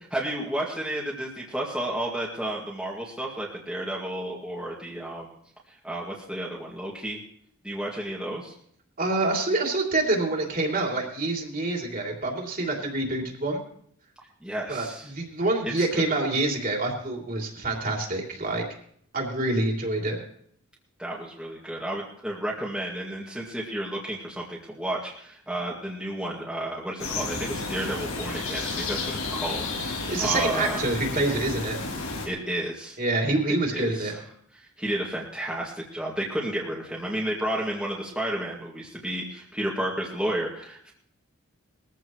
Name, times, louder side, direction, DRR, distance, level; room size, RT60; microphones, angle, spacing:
voice 1, 0.1-5.3 5.7-7.2 7.6-8.5 14.4-15.1 15.8-16.0 21.0-30.9 32.2-33.0 33.7-34.2 34.6-40.9, right 1 dB, 5° right, -5 dB, 2.2 m, -32 dB
voice 2, 9.0-13.6 14.7-18.6 19.1-20.2 30.1-31.9 33.0-34.2, right 2 dB, 40° right, 0 dB, 3.2 m, -26 dB
sound 1, 27.0-32.3, left 3 dB, 70° left, 5.2 m, -32 dB
21.5 x 14.5 x 3.2 m, 0.64 s
head